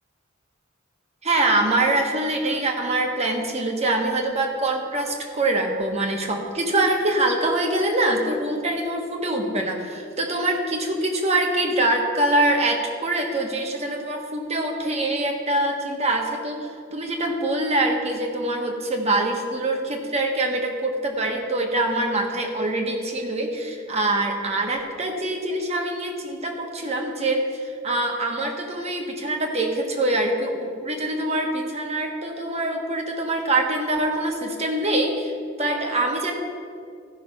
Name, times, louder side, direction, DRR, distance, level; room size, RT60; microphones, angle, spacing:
voice 1, 1.2-36.3, right 2 dB, 30° right, 2 dB, 1.3 m, -24 dB
15.0 x 5.9 x 5.5 m, 2.3 s
head